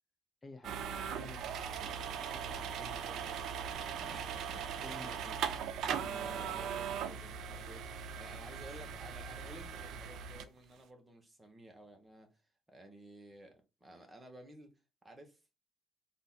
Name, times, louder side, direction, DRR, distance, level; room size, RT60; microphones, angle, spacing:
voice 1, 0.4-0.7 1.2-1.5 2.2-3.5 3.9-4.2 4.8-5.4 5.9-6.6, left 2 dB, 25° left, 0.7 m, -52 dB
sound 1, 0.6-10.4, right 7 dB, 70° right, 0.5 m, -39 dB
voice 2, 4.1-4.6 5.9-12.4 12.7-14.7 15.0-15.4, right 1 dB, 20° right, 1.4 m, -54 dB
4.0 x 2.7 x 4.0 m
supercardioid pair, 80°, 0 cm